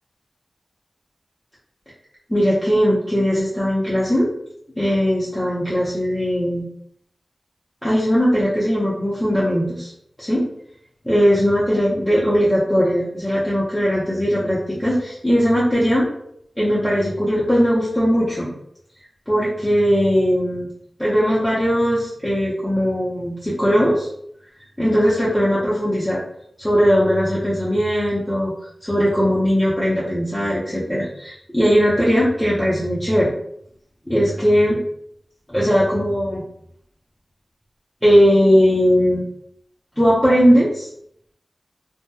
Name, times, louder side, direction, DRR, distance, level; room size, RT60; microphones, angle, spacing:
voice 1, 2.3-4.3 4.8-6.7 7.8-9.9 10.2-10.4 11.0-16.1 16.6-18.5 19.3-20.7 21.0-24.1 24.8-26.2 26.6-28.5 28.8-33.3 34.1-34.8 35.5-36.4 38.0-39.2 40.0-40.9, equal, 5° left, -8 dB, 0.7 m, -19 dB
2.9 x 2.2 x 2.2 m, 0.72 s
wide cardioid pair, 60°, 0 cm